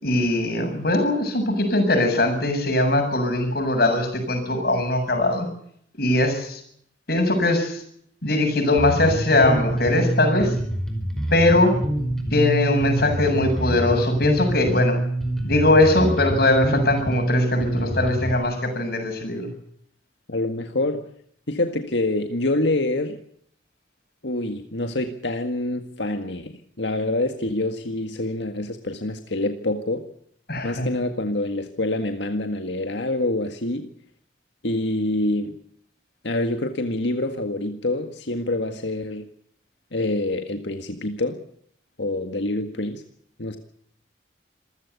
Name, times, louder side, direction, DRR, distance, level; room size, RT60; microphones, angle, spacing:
voice 1, 0.0-5.5 6.0-6.6 7.1-7.8 8.2-10.6 11.3-11.8 12.3-14.9 15.4-19.5 30.5-30.9, left 2 dB, 55° left, 5 dB, 7.6 m, -21 dB
Bass guitar, 8.8-18.4, right 1 dB, 5° left, 5.0 m, -26 dB
voice 2, 20.3-21.1 21.5-23.2 24.2-30.0 30.6-33.9 34.6-35.6 36.2-39.3 39.9-41.4 42.0-43.0 43.4-43.6, left 2 dB, 70° left, 6 dB, 1.8 m, -26 dB
27.0 x 16.0 x 8.3 m, 0.67 s
head